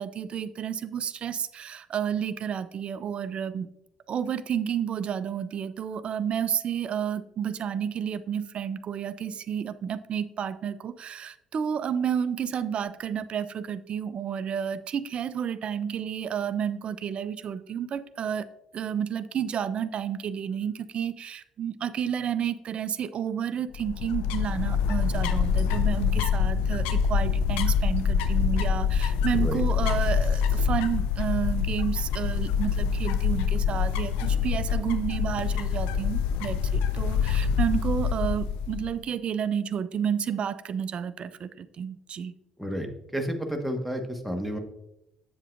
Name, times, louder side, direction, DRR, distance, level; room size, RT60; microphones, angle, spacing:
voice 1, 0.0-3.7 4.1-18.5 18.7-42.3, right 8 dB, 45° right, 14 dB, 0.5 m, -31 dB
sound 1, 23.7-39.0, left 7 dB, 70° left, 0.5 m, -25 dB
voice 2, 43.1-44.6, equal, ahead, 4 dB, 1.4 m, -30 dB
7.9 x 7.3 x 2.5 m, 0.83 s
figure-of-eight pair, 50°, 3 cm